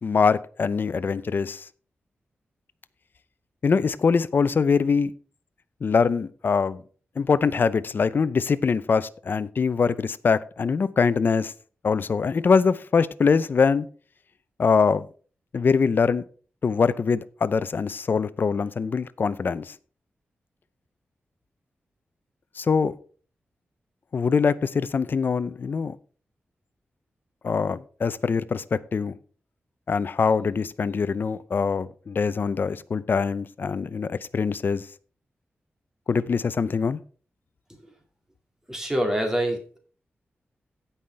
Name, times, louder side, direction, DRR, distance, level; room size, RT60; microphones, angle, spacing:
voice 1, 0.0-1.6 3.6-5.1 5.8-6.8 7.2-11.5 11.8-13.9 14.6-15.0 15.5-16.2 16.6-19.7 22.6-22.9 24.1-26.0 27.4-29.2 29.9-34.8 36.1-37.0, left 5 dB, 55° left, 0.6 m, -23 dB
voice 2, 38.7-39.8, right 1 dB, 10° right, 2.2 m, -25 dB
16.5 x 5.7 x 3.4 m
wide cardioid pair, 110°, 4 cm